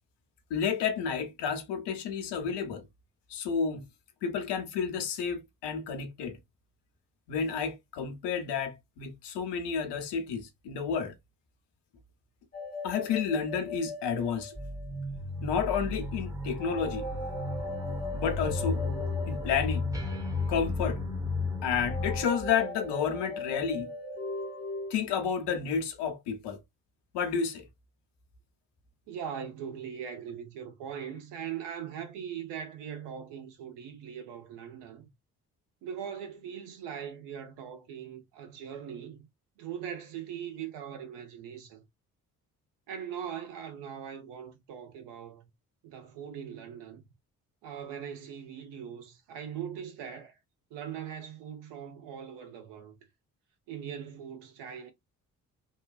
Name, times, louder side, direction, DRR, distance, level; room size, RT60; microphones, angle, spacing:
voice 1, 0.5-2.8 3.3-3.9 4.2-6.4 7.3-11.1 12.8-14.5 15.4-17.1 18.1-18.8 19.3-19.9 20.5-21.0 21.6-23.9 24.9-26.6 27.1-27.7, left 6 dB, 65° left, 0.9 m, -31 dB
sound 1, 12.5-15.2 16.6-20.5 21.9-24.9, left 2 dB, 20° left, 0.7 m, -39 dB
sound 2, 14.5-22.3, left 3 dB, 10° right, 0.9 m, -33 dB
voice 2, 29.1-35.0 35.8-39.3 39.6-41.8 42.9-45.5 45.8-47.1 47.6-50.4 50.7-53.0 53.7-54.9, right 8 dB, 65° right, 1.1 m, -40 dB
3.1 x 2.2 x 2.5 m
figure-of-eight pair, 40°, 45 cm